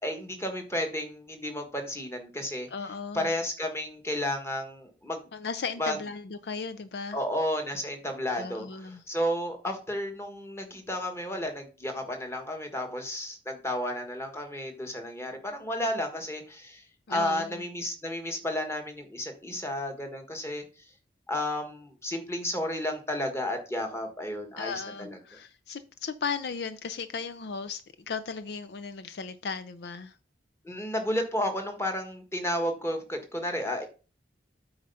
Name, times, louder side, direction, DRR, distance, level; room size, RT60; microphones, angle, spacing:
voice 1, 0.0-2.7 3.1-5.3 5.8-6.0 7.1-16.8 17.1-20.6 21.3-25.2 30.6-33.9, left 1 dB, 15° left, 1.5 m, -32 dB
voice 2, 2.7-3.3 5.3-7.2 8.4-9.0 17.1-17.7 24.6-27.8 28.1-30.2, left 5 dB, 65° left, 0.5 m, -36 dB
8.7 x 4.3 x 5.5 m
head